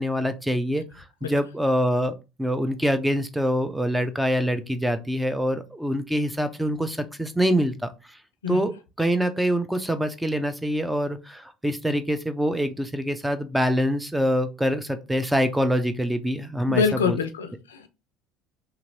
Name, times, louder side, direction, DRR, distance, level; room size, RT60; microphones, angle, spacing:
voice 1, 0.0-7.9 8.5-17.2, equal, 5° right, 10 dB, 0.6 m, -25 dB
voice 2, 16.7-17.9, left 6 dB, 90° left, 8 dB, 0.4 m, -25 dB
2.9 x 2.8 x 2.6 m, 0.28 s
hypercardioid pair, 70°, 0 cm